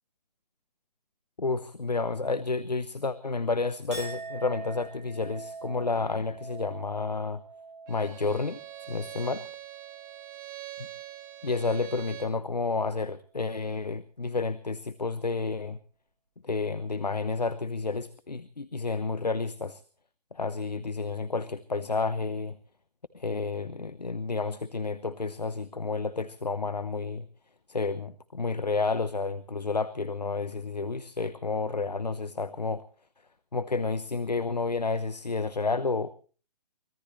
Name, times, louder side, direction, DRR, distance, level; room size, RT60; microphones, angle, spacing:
voice 1, 1.4-7.4 7.9-8.6 8.9-9.4 11.4-15.8 16.4-19.8 20.3-22.6 23.1-27.3 27.7-32.8 33.5-36.1, left 4 dB, 85° left, 16 dB, 0.9 m, -30 dB
Chink clink, 3.9-10.5 10.8-11.4, right 3 dB, 45° right, 6.3 m, -44 dB
Bowed string instrument, 7.9-12.4, right 13 dB, 30° right, 1.5 m, -43 dB
24.0 x 18.0 x 3.2 m, 0.38 s
figure-of-eight pair, 135°, 21 cm